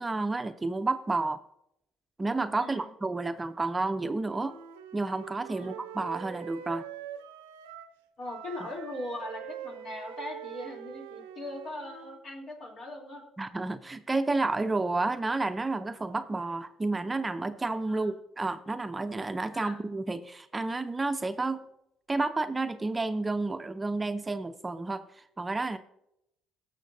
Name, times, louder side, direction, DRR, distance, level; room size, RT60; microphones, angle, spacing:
voice 1, 0.0-1.4 2.2-4.5 4.9-6.9 13.4-21.6 22.1-25.8, right 3 dB, 20° right, 10 dB, 0.6 m, -31 dB
voice 2, 2.6-2.9 5.5-5.8 8.2-13.2 17.9-18.2 19.5-19.8, left 1 dB, 60° left, -1 dB, 3.0 m, -40 dB
Wind instrument woodwind instrument, 4.2-8.0 8.2-12.2, right 9 dB, 90° right, 0.6 m, -44 dB
19.0 x 6.6 x 2.7 m, 0.81 s
hypercardioid pair, 55°, 0 cm